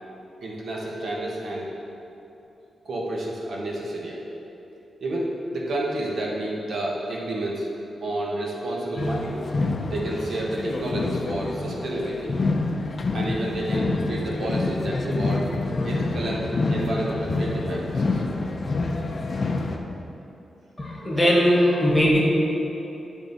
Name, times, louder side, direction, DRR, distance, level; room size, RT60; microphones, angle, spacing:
voice 1, 0.4-1.7 2.8-4.2 5.0-7.7 8.0-9.4 9.9-12.3 13.1-15.5 15.8-18.2, right 1 dB, 65° right, -3 dB, 1.1 m, -30 dB
sound 1, 9.0-19.8, left 3 dB, 40° left, 0.5 m, -27 dB
voice 2, 20.8-22.2, equal, 10° left, -4 dB, 1.2 m, -19 dB
10.5 x 3.6 x 4.0 m, 2.9 s
wide cardioid pair, 130°, 0 cm